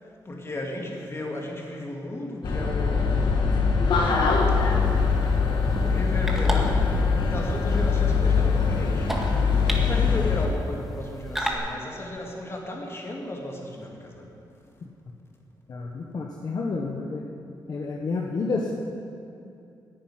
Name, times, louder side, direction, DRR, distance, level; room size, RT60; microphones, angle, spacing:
voice 1, 0.0-3.8 4.5-5.4 5.8-6.9 7.2-9.1 9.4-14.3, left 1 dB, 30° left, 0 dB, 2.6 m, -35 dB
sound 1, 2.4-10.5, left 5 dB, 70° left, 2.0 m, -22 dB
sound 2, 4.1-11.5, equal, 5° right, 1.8 m, -37 dB
voice 2, 15.7-17.2 17.7-18.7, left 3 dB, 50° left, -1 dB, 1.4 m, -29 dB
10.5 x 10.0 x 9.2 m, 2.6 s
cardioid pair, 105°, 8 cm